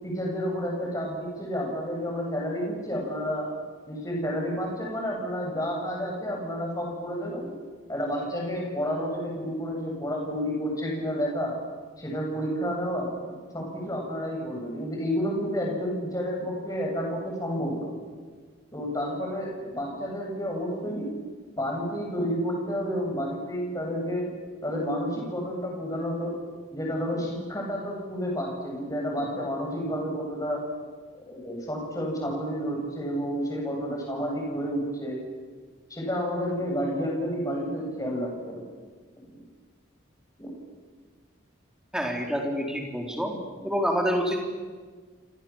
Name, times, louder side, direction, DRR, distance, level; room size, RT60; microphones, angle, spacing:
voice 1, 0.0-3.5 3.9-7.5 7.9-11.6 12.0-13.1 13.5-17.9 18.7-21.1 21.6-24.3 24.6-26.3 26.7-30.6 31.3-35.2 35.9-38.6 40.4-40.5 43.6-43.7, equal, 20° left, -1 dB, 7.8 m, -30 dB
voice 2, 41.9-43.3 43.6-44.4, equal, 5° right, 1 dB, 4.2 m, -27 dB
29.0 x 26.0 x 7.4 m, 1.5 s
head